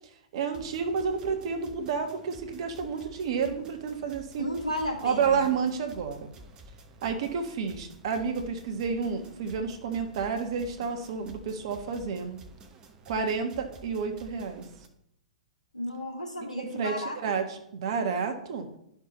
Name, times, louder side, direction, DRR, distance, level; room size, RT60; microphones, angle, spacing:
voice 1, 0.3-4.4 5.0-6.3 7.0-12.4 13.1-14.6 16.7-18.7, right 5 dB, 45° right, 5 dB, 1.2 m, -30 dB
sound 1, 0.5-14.9, right 1 dB, 20° right, 0.8 m, -51 dB
voice 2, 4.4-5.6 15.7-17.4, left 1 dB, 80° left, 0 dB, 1.9 m, -34 dB
11.0 x 5.7 x 3.0 m, 0.74 s
figure-of-eight pair, 110°, 4 cm